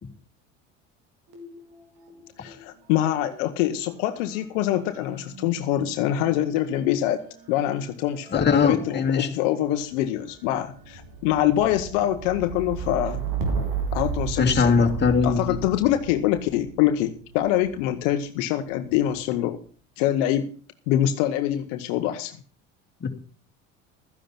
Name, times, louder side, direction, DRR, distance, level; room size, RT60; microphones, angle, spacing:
sound 1, 1.3-2.6 2.9-17.9 18.7-19.3, right 5 dB, 70° right, 4.3 m, -35 dB
voice 1, 2.4-7.2 7.5-13.2 13.9-14.9 15.2-19.6 20.0-20.5 20.9-22.4, left 12 dB, 75° left, 8 dB, 1.2 m, -25 dB
voice 2, 8.3-9.3 14.4-15.4 23.0-23.1, left 5 dB, 30° left, 2 dB, 2.6 m, -20 dB
13.5 x 10.5 x 5.8 m, 0.41 s
hypercardioid pair, 80°, 37 cm